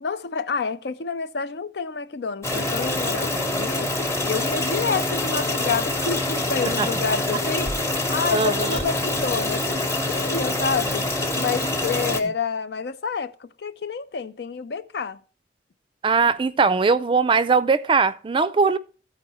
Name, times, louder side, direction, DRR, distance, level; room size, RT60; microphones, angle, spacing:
voice 1, 0.0-3.9 4.3-7.7 8.1-11.1 11.3-15.2, left 5 dB, 65° left, 0.5 m, -28 dB
sound 1, 2.4-12.2, left 2 dB, 15° left, 0.9 m, -25 dB
voice 2, 8.3-8.8 16.0-18.8, right 4 dB, 30° right, 0.4 m, -20 dB
13.5 x 4.6 x 4.2 m
head